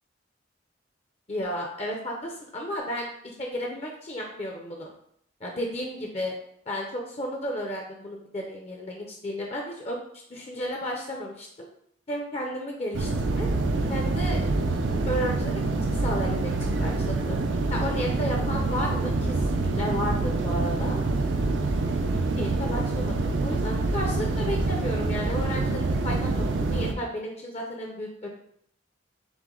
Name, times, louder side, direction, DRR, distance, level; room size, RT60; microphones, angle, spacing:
voice 1, 1.3-4.9 5.4-6.3 6.7-10.0 10.3-11.7 12.1-13.5 13.9-14.5 15.1-15.5 15.9-17.4 17.7-21.0 22.4-26.4 26.7-28.3, equal, 35° left, 0 dB, 0.6 m, -33 dB
sound 1, 12.9-26.9, right 3 dB, 85° right, 0.5 m, -26 dB
6.0 x 2.1 x 3.7 m, 0.69 s
head